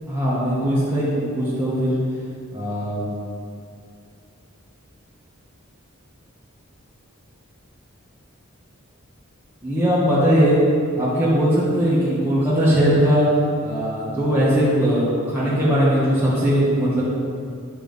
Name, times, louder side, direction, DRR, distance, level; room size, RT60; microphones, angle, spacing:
voice 1, 0.1-2.0 2.5-3.1 9.6-10.6 11.0-13.3 13.6-17.0, equal, 10° right, -10 dB, 1.7 m, -19 dB
10.0 x 7.4 x 3.6 m, 2.3 s
head